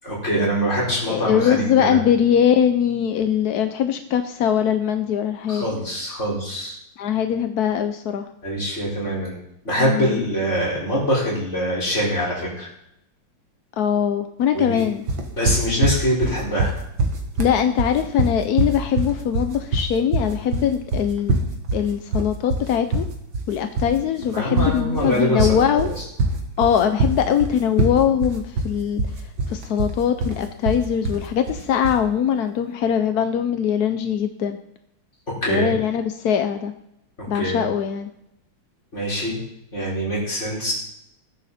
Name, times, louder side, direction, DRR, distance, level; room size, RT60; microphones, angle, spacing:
voice 1, 0.0-2.0 5.5-6.8 8.4-9.4 9.6-12.7 14.5-14.8 15.3-16.7 24.3-25.6 35.4-35.7 37.2-37.6 38.9-39.4 39.7-40.7, equal, 30° left, -5 dB, 5.9 m, -24 dB
voice 2, 1.1-5.7 7.0-8.3 9.8-10.2 13.8-15.0 17.4-21.3 21.7-23.0 23.5-25.9 26.6-34.6 35.5-36.7 37.3-38.1, left 8 dB, 60° left, 8 dB, 1.0 m, -21 dB
sound 1, 15.1-32.1, right 2 dB, 60° right, 2.4 m, -24 dB
20.0 x 10.5 x 4.3 m, 0.81 s
omnidirectional pair, 2.4 m